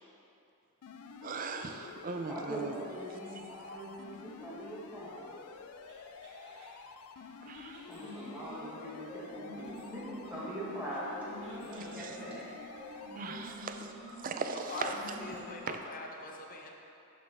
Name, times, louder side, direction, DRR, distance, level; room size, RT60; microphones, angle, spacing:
sound 1, 0.8-13.5, left 5 dB, 75° left, 0.4 m, -50 dB
voice 1, 1.2-2.8 3.7-3.8 7.4-7.8 11.7-12.2 13.1-13.9 14.2-14.9 15.7-15.8, right 4 dB, 40° right, 6 dB, 0.4 m, -39 dB
sound 2, 2.2-6.8 7.5-15.8, equal, 65° right, 1.5 m, -48 dB
voice 2, 2.3-5.3 7.9-12.5, right 1 dB, 5° right, -8 dB, 1.3 m, -42 dB
voice 3, 14.7-16.7, left 2 dB, 40° left, 1 dB, 0.7 m, -43 dB
11.5 x 4.0 x 3.5 m, 2.7 s
head